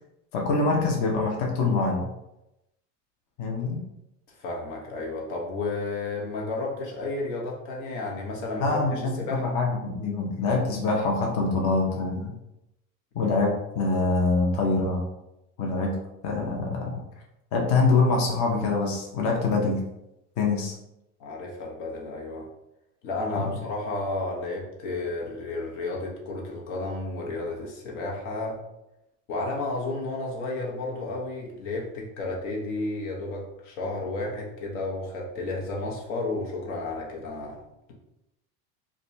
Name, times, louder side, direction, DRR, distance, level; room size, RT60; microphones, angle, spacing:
voice 1, 0.3-2.1 3.4-3.8 8.6-9.0 9.3-12.3 13.1-15.0 15.6-15.9 16.2-17.0 17.5-19.8 20.4-20.7 23.3-23.5, left 3 dB, 60° left, -1 dB, 0.9 m, -24 dB
voice 2, 4.3-9.5 13.2-13.5 21.2-22.5 23.0-28.6 29.3-37.6, left 2 dB, 90° left, -1 dB, 1.0 m, -32 dB
4.9 x 2.3 x 2.7 m, 0.89 s
cardioid pair, 130°, 34 cm